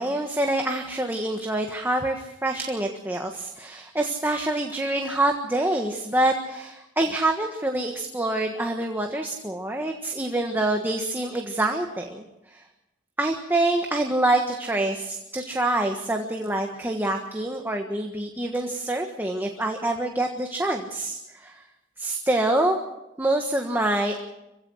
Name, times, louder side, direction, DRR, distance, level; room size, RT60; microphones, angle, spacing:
voice 1, 0.0-12.6 13.2-21.6 22.0-22.8 23.2-24.2, right 1 dB, 10° right, 2 dB, 1.5 m, -26 dB
26.0 x 16.5 x 6.5 m, 0.90 s
head